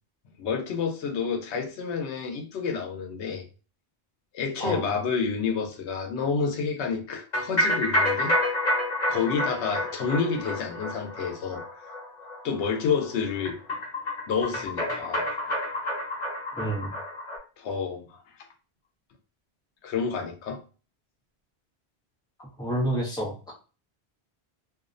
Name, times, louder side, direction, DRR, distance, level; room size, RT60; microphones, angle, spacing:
voice 1, 0.4-3.4 4.3-8.3 9.1-11.8 12.4-13.6 14.3-15.2 17.6-18.2 19.8-20.6, left 5 dB, 90° left, 0.9 m, -29 dB
voice 2, 4.6-4.9 16.5-16.9 22.4-23.5, right 1 dB, 5° left, 0.5 m, -29 dB
sound 1, 7.3-17.4, left 1 dB, 45° left, 1.0 m, -29 dB
2.5 x 2.0 x 2.4 m
omnidirectional pair, 1.1 m